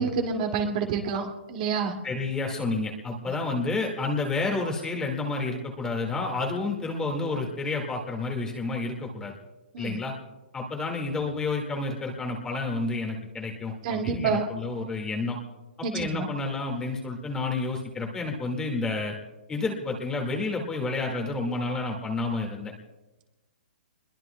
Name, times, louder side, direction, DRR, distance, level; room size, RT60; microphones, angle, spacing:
voice 1, 0.0-1.9 9.7-10.0 13.8-14.5 15.8-16.3, right 5 dB, 45° right, 2 dB, 2.2 m, -28 dB
voice 2, 2.0-9.3 9.8-10.2 10.5-15.4 15.9-19.2 19.5-22.7, left 3 dB, 10° left, 1 dB, 1.9 m, -30 dB
26.5 x 22.0 x 2.3 m, 1.1 s
hypercardioid pair, 150°, 6 cm